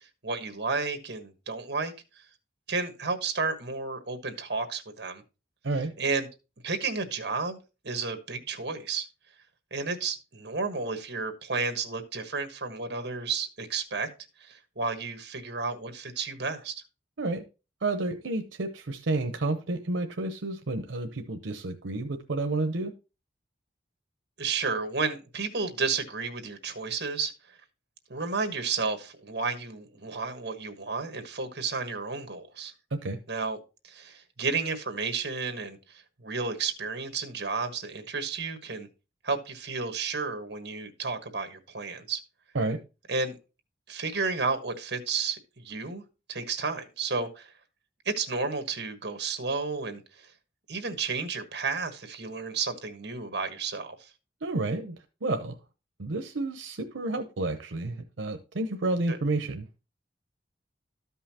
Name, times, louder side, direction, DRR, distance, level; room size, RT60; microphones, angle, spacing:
voice 1, 0.2-1.9 2.7-5.2 6.0-6.3 6.6-7.6 7.8-9.1 9.7-14.1 14.5-16.7 24.4-27.3 28.1-32.7 33.3-33.6 33.8-38.9 39.2-42.2 43.1-43.4 43.9-46.0 46.3-47.5 48.0-50.0 50.7-53.9 59.1-59.2, right 4 dB, 60° right, 1.3 m, -32 dB
voice 2, 17.8-22.9 32.9-33.2 42.5-42.8 54.4-54.9 55.2-55.5 56.0-59.7, right 2 dB, 85° right, 0.7 m, -30 dB
13.0 x 5.5 x 2.8 m
head